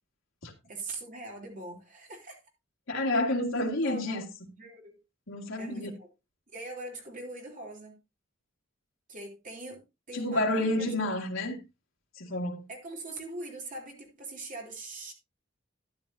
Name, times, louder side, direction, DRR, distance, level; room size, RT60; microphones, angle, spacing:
voice 1, 0.7-2.4 3.5-4.2 4.6-5.0 5.6-6.1 6.5-8.0 9.1-10.9 12.7-15.1, right 2 dB, 40° right, 3.3 m, -42 dB
voice 2, 2.9-4.2 5.3-5.9 10.1-11.6 12.2-12.6, left 1 dB, 75° left, 2.0 m, -29 dB
12.5 x 10.5 x 2.7 m
head